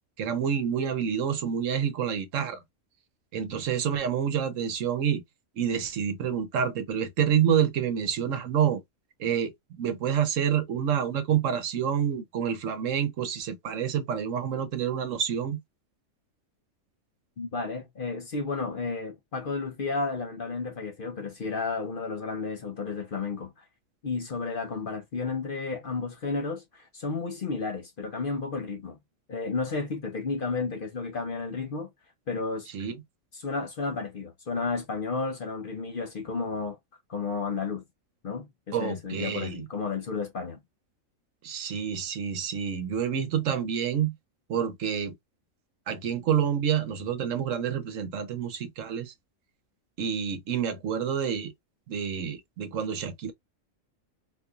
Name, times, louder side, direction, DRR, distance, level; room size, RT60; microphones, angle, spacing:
voice 1, 0.2-2.6 3.3-5.2 5.6-8.8 9.2-15.6 32.7-32.9 38.7-39.7 41.4-44.1 44.5-45.1 45.9-49.1 50.0-51.5 51.9-53.3, right 8 dB, 70° right, 1.1 m, -28 dB
voice 2, 17.4-23.5 24.0-29.0 29.3-31.9 32.3-32.7 33.3-36.8 37.1-37.8 38.2-40.6, left 4 dB, 50° left, 0.8 m, -32 dB
3.8 x 3.0 x 2.3 m
omnidirectional pair, 1.4 m